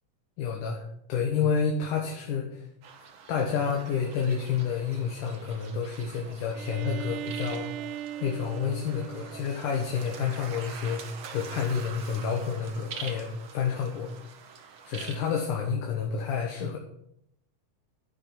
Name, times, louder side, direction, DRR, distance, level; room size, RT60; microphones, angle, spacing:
voice 1, 0.4-2.7 3.3-7.7 8.2-14.1 14.8-16.8, left 6 dB, 75° left, 1 dB, 2.8 m, -29 dB
sound 1, 2.8-15.5, right 6 dB, 60° right, 1.4 m, -45 dB
Bowed string instrument, 6.5-10.3, right 11 dB, 80° right, 2.0 m, -39 dB
10.5 x 10.0 x 5.8 m, 0.76 s
omnidirectional pair, 3.8 m